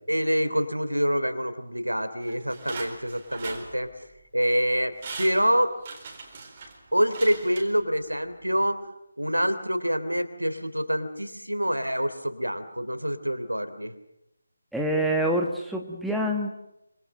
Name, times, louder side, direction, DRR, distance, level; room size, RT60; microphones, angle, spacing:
voice 1, 0.1-3.9 4.3-5.7 6.9-8.8 9.2-13.9, equal, 85° right, 10 dB, 3.3 m, -26 dB
sound 1, 2.2-4.2 4.7-4.8 5.0-8.2 8.5-8.6, right 4 dB, 25° right, 4.4 m, -41 dB
voice 2, 14.7-16.5, equal, ahead, 0 dB, 1.6 m, -26 dB
26.5 x 26.5 x 6.8 m, 0.84 s
figure-of-eight pair, 155°, 0 cm